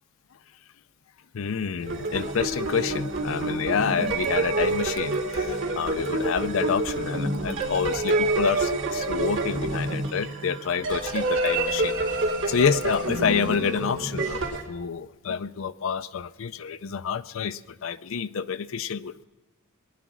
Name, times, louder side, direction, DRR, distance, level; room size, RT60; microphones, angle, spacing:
voice 1, 1.3-11.9 12.5-19.2, left 6 dB, 65° left, 12 dB, 0.5 m, -28 dB
sound 1, 1.8-14.6, right 2 dB, 60° right, 2.9 m, -27 dB
19.5 x 10.5 x 6.1 m, 1.2 s
head